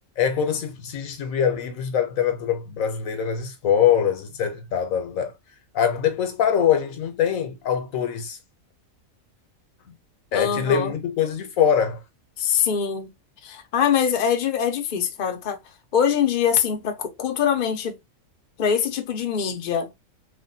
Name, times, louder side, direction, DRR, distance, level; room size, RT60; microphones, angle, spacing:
voice 1, 0.2-5.3 5.7-8.4 10.3-12.0, left 8 dB, 75° left, 1.2 m, -23 dB
voice 2, 10.3-10.9 12.4-13.1 13.4-15.6 15.9-18.0 18.6-19.9, left 8 dB, 50° left, 0.6 m, -23 dB
3.2 x 2.2 x 2.6 m
omnidirectional pair, 1.4 m